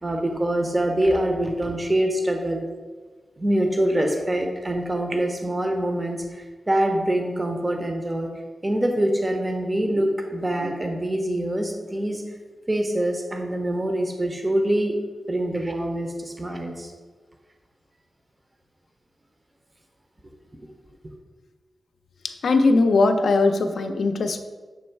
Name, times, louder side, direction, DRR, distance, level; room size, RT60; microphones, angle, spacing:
voice 1, 0.0-2.7 3.4-8.3 8.6-12.2 12.7-14.9 15.3-16.9, right 1 dB, 20° right, 3 dB, 0.5 m, -24 dB
voice 2, 22.4-24.4, left 3 dB, 70° left, 7 dB, 0.4 m, -19 dB
6.9 x 3.1 x 4.4 m, 1.4 s
wide cardioid pair, 165°, 0 cm